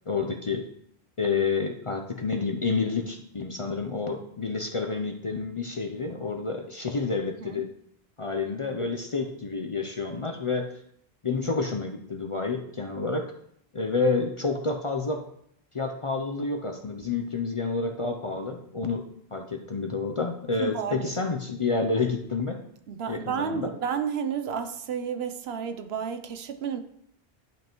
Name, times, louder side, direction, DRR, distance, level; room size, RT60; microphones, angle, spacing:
voice 1, 0.1-0.6 1.2-7.7 8.2-10.7 11.2-13.3 13.7-15.3 15.7-19.0 19.3-22.6 23.1-23.7, left 4 dB, 40° left, 0.5 m, -29 dB
voice 2, 20.6-21.1 22.9-26.8, right 7 dB, 75° right, 0.9 m, -31 dB
11.0 x 5.3 x 3.0 m
omnidirectional pair, 1.1 m